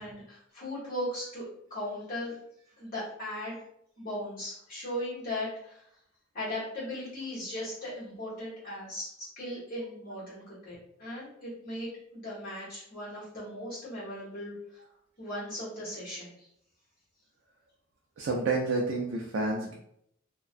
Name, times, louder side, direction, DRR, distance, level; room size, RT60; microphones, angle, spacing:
voice 1, 0.0-2.3 2.8-3.6 4.0-5.9 6.3-14.8 15.2-16.5, left 1 dB, 45° left, -9 dB, 1.0 m, -38 dB
voice 2, 18.2-19.7, right 3 dB, 60° right, 0 dB, 0.3 m, -29 dB
2.4 x 2.1 x 2.5 m, 0.72 s
head